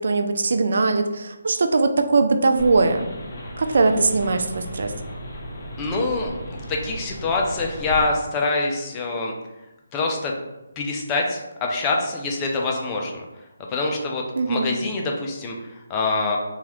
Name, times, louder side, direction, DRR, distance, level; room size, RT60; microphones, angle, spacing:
voice 1, 0.0-3.1 3.6-4.9 14.4-14.7, right 3 dB, 60° right, 6 dB, 0.3 m, -20 dB
sound 1, 2.6-8.0, equal, 45° left, 0.8 m, -36 dB
voice 2, 5.8-9.3 9.9-10.3 10.8-13.2 13.7-16.4, left 3 dB, 20° left, 0 dB, 0.5 m, -25 dB
3.0 x 2.4 x 2.9 m, 1.0 s
figure-of-eight pair, 150°, 0 cm